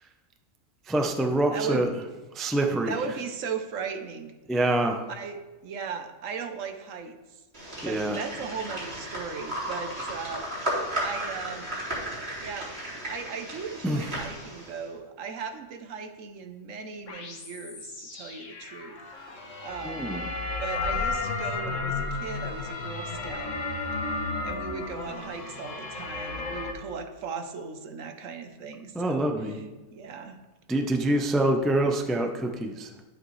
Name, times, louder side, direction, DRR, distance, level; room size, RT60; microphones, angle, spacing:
voice 1, 0.9-1.9 2.3-2.9 4.5-5.0 7.8-8.2 13.8-14.0 19.8-20.2 28.9-29.6 30.7-32.9, right 1 dB, ahead, 3 dB, 0.3 m, -25 dB
voice 2, 1.5-1.8 2.9-4.3 5.1-7.2 7.8-11.7 12.4-12.7 13.0-19.0 19.3-20.2 20.6-23.6 24.4-29.6 29.9-30.4, right 6 dB, 65° right, 7 dB, 1.1 m, -37 dB
sound 1, 7.5-14.8, right 1 dB, 45° right, 2.9 m, -34 dB
sound 2, 17.1-26.7, left 3 dB, 60° left, 1.4 m, -33 dB
11.5 x 7.6 x 3.2 m, 1.2 s
omnidirectional pair, 1.5 m